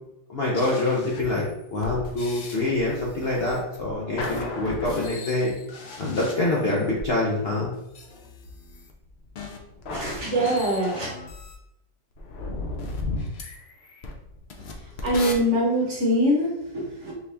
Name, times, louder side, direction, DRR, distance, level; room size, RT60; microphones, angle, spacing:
voice 1, 0.3-1.4 1.7-5.5 6.0-7.7, left 2 dB, 50° left, -5 dB, 0.7 m, -25 dB
sound 1, 0.5-7.1 7.9-11.6 12.2-15.3, left 3 dB, 85° left, 0.5 m, -36 dB
voice 2, 9.9-11.1 15.0-17.1, equal, 50° right, -3 dB, 1.0 m, -23 dB
4.3 x 2.9 x 3.3 m, 0.86 s
omnidirectional pair, 1.9 m